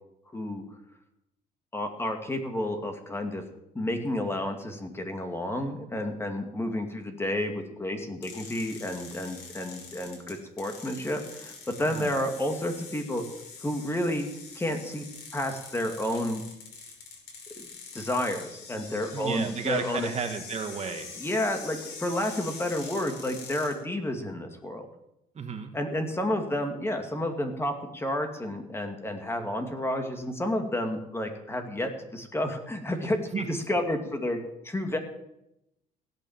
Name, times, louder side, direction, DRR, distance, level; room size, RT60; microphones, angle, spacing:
voice 1, 0.3-0.6 1.7-3.4 3.7-13.2 13.6-14.3 14.5-15.0 15.3-16.4 17.6-17.7 17.9-20.1 21.2-24.8 25.7-35.0, left 1 dB, 15° left, 5 dB, 2.4 m, -31 dB
sound 1, 8.2-23.7, left 5 dB, 80° left, 5.7 m, -44 dB
voice 2, 19.1-21.1 25.4-25.7 33.3-33.5, right 6 dB, 40° right, 5 dB, 1.9 m, -32 dB
16.5 x 9.0 x 7.4 m, 0.85 s
cardioid pair, 110°, 17 cm